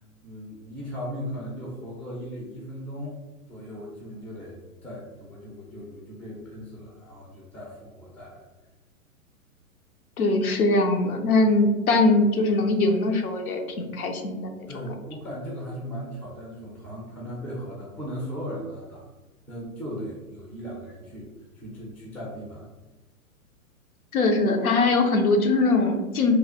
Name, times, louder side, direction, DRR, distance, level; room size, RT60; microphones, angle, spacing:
voice 1, 0.2-3.2 3.5-8.5 14.7-19.1 19.5-21.3 21.5-22.7, equal, 5° left, -4 dB, 0.3 m, -37 dB
voice 2, 10.2-14.7 24.1-26.4, left 2 dB, 85° left, 4 dB, 0.7 m, -22 dB
3.1 x 2.2 x 4.0 m, 1.1 s
hypercardioid pair, 115°, 43 cm